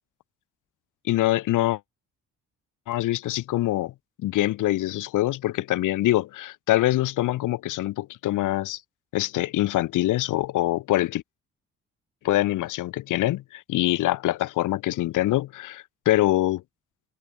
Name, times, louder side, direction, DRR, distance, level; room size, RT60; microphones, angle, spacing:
voice 1, 1.0-1.8 2.9-3.9 4.2-8.8 9.1-11.2 12.2-16.6, left 15 dB, 90° left, 6.1 m, -24 dB
cardioid pair, 90°, 30 cm